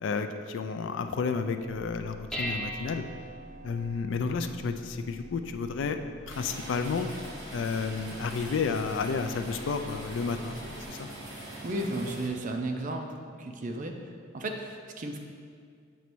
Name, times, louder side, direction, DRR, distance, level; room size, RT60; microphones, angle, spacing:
voice 1, 0.0-3.0 3.6-6.0 6.3-7.1 7.5-11.1, left 5 dB, 65° left, 7 dB, 0.3 m, -31 dB
Dishes pots and pans, 1.6-10.9, equal, 5° left, 0.7 m, -43 dB
sound 1, 6.3-12.3, right 1 dB, 55° right, 1.3 m, -42 dB
voice 2, 11.6-13.1 13.4-14.0 14.3-15.2, right 2 dB, 40° right, 4 dB, 0.5 m, -33 dB
8.0 x 3.1 x 4.5 m, 2.2 s
head